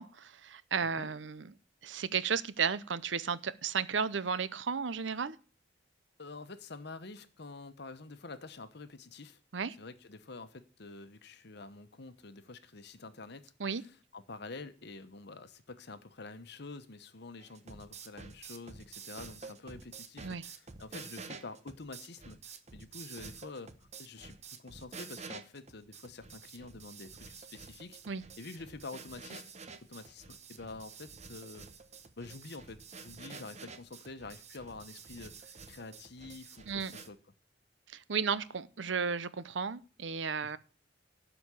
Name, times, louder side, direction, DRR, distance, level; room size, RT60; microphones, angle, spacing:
voice 1, 0.0-1.5 1.8-5.4 9.5-9.8 13.6-13.8 20.2-20.4 28.1-28.2 36.7-36.9 37.9-40.6, right 6 dB, 75° right, 0.7 m, -34 dB
voice 2, 6.2-9.4 9.8-23.7 24.0-28.0 28.4-29.5 29.9-31.7 32.2-37.2 40.4-40.6, left 3 dB, 65° left, 1.1 m, -47 dB
sound 1, 17.4-37.1, right 5 dB, 40° right, 1.0 m, -49 dB
12.0 x 5.1 x 8.3 m
head